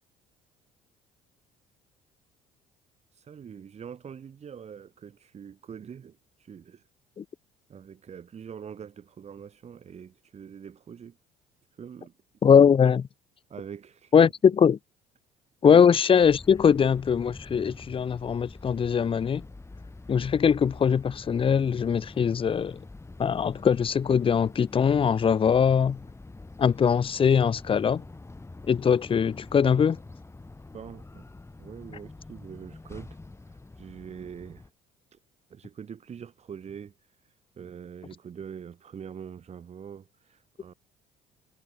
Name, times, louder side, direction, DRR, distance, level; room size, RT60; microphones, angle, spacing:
voice 1, 3.1-6.8 7.7-11.2 11.8-12.1 12.5-12.7 13.5-14.1 15.7-15.9 30.7-31.3 31.6-33.2 33.8-34.7 35.1-35.2 35.5-37.0 37.6-40.7, right 7 dB, 45° right, 7.3 m, -43 dB
voice 2, 12.4-13.0 14.1-14.8 15.6-19.4 20.1-22.8 23.2-26.0 26.6-28.0 28.7-30.0, left 7 dB, 35° left, 1.0 m, -21 dB
sound 1, 16.2-34.7, left 2 dB, 15° left, 4.5 m, -46 dB
hypercardioid pair, 70°, 15 cm